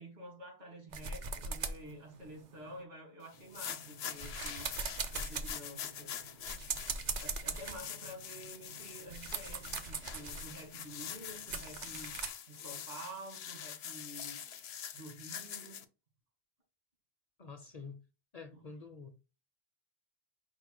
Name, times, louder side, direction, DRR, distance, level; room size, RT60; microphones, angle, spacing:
voice 1, 0.0-4.7 5.1-6.1 7.2-12.1 12.5-14.4 14.9-15.8 18.5-18.6, right 1 dB, 75° right, 2.2 m, -49 dB
sound 1, 0.9-2.8 3.3-12.3, right 4 dB, 55° right, 0.6 m, -42 dB
sound 2, 3.3-15.8, left 9 dB, 85° left, 0.9 m, -45 dB
voice 2, 17.4-18.0 18.3-19.2, left 4 dB, 45° left, 0.6 m, -48 dB
5.2 x 2.1 x 4.6 m
omnidirectional pair, 1.0 m